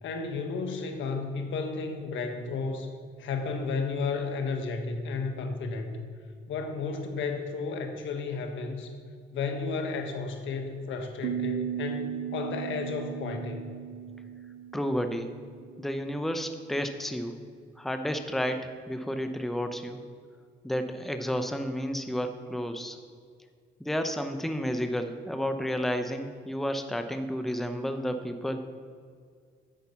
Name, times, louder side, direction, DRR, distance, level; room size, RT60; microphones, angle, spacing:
voice 1, 0.0-2.9 3.2-6.0 6.5-8.9 9.3-13.6, left 4 dB, 75° left, 5 dB, 1.3 m, -33 dB
sound 1, 11.2-16.1, right 10 dB, 85° right, 0.6 m, -37 dB
voice 2, 14.7-15.3 15.8-17.3 17.8-20.0 20.6-23.0 23.8-28.6, equal, ahead, 7 dB, 0.7 m, -31 dB
9.0 x 5.4 x 7.0 m, 2.1 s
cardioid pair, 90°, 20 cm